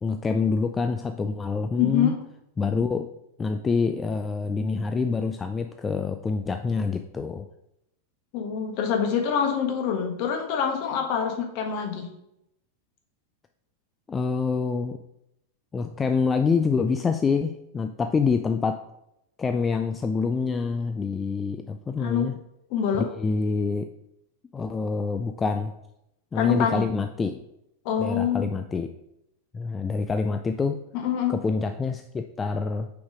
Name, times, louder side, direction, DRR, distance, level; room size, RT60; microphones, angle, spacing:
voice 1, 0.0-2.1 2.6-3.1 3.4-7.5 14.1-15.0 15.7-18.8 19.4-22.4 23.0-23.9 24.5-25.8 26.3-27.4 28.0-28.9 29.5-30.8 31.3-32.9, left 4 dB, 15° left, 7 dB, 0.3 m, -26 dB
voice 2, 1.8-2.1 8.3-12.1 22.0-22.3 22.7-23.0 26.3-26.8 27.8-28.5 30.9-31.4, left 7 dB, 45° left, 3 dB, 1.2 m, -25 dB
5.7 x 4.0 x 4.9 m, 0.82 s
figure-of-eight pair, 90°, 0 cm